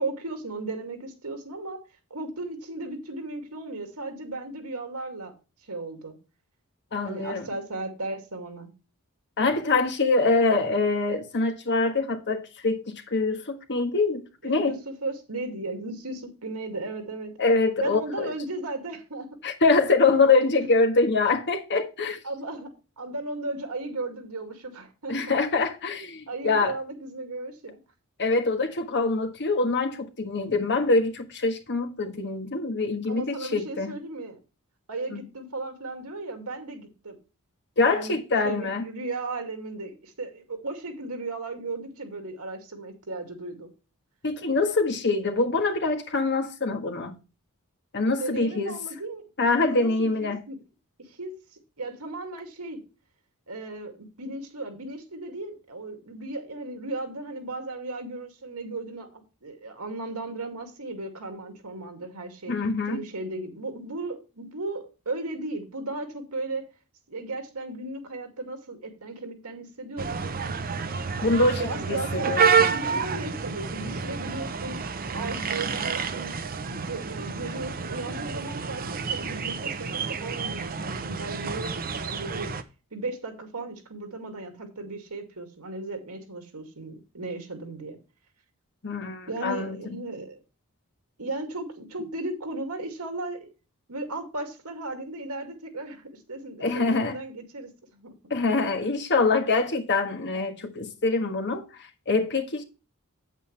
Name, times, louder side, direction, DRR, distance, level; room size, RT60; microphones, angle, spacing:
voice 1, 0.0-1.8 2.1-5.3 5.7-6.2 7.0-8.7 14.4-17.3 17.8-19.3 22.2-22.7 23.0-25.4 26.3-27.8 33.1-34.4 34.9-37.2 37.9-38.2 38.4-43.7 48.2-49.2 49.6-50.6 51.0-51.3 51.8-52.8 53.5-62.5 62.9-66.7 67.1-70.3 71.6-72.4 72.6-74.8 75.1-76.3 76.6-82.5 82.9-88.0 89.3-90.4 91.2-93.5 93.9-98.1, right 2 dB, 80° right, 2.4 m, -36 dB
voice 2, 6.9-7.5 9.4-14.8 17.4-18.3 19.4-22.2 25.1-26.8 28.2-33.9 35.1-35.2 37.8-38.9 44.2-47.2 47.9-48.8 49.4-50.4 62.5-63.0 71.2-72.8 88.8-89.8 96.6-97.2 98.3-102.6, left 3 dB, 55° left, 1.4 m, -24 dB
sound 1, 70.0-82.6, right 5 dB, 40° right, 0.7 m, -29 dB
8.5 x 8.3 x 3.3 m
head